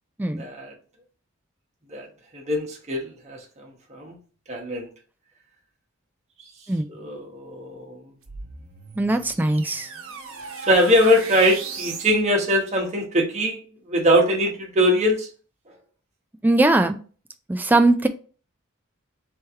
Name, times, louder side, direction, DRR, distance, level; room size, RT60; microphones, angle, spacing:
voice 1, 0.4-0.7 1.9-2.1 2.3-4.2 4.5-4.9 6.9-8.0 10.7-13.6 13.9-15.3, equal, 35° right, 1.1 m, -22 dB
sound 1, 8.2-12.2, right 5 dB, 80° right, 0.9 m, -37 dB
voice 2, 9.0-9.9 16.4-17.0 17.5-18.1, right 2 dB, 10° right, 0.3 m, -20 dB
3.4 x 3.3 x 4.2 m
head